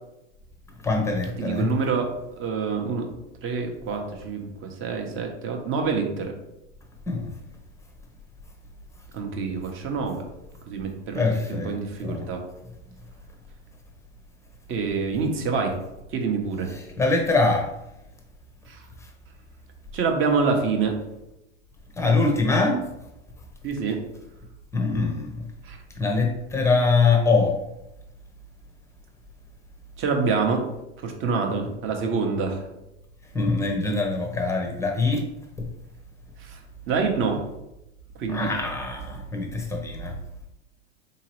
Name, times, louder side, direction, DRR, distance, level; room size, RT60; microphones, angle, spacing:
voice 1, 0.8-1.7 7.1-7.3 11.1-11.7 12.0-12.3 16.7-17.7 22.0-22.8 24.7-25.3 26.0-27.6 33.3-35.2 35.6-35.7 38.3-40.1, left 3 dB, 10° left, 2 dB, 0.6 m, -23 dB
voice 2, 1.4-2.1 2.4-3.0 3.4-6.3 9.1-10.2 10.7-11.2 11.5-12.4 14.7-15.8 16.1-16.7 18.7-18.8 19.9-21.0 23.6-24.0 25.6-25.8 30.0-30.6 31.0-32.6 36.4-36.6 36.9-37.4 38.2-38.5, right 5 dB, 35° right, 3 dB, 0.8 m, -26 dB
3.9 x 2.8 x 3.0 m, 0.89 s
hypercardioid pair, 95°, 36 cm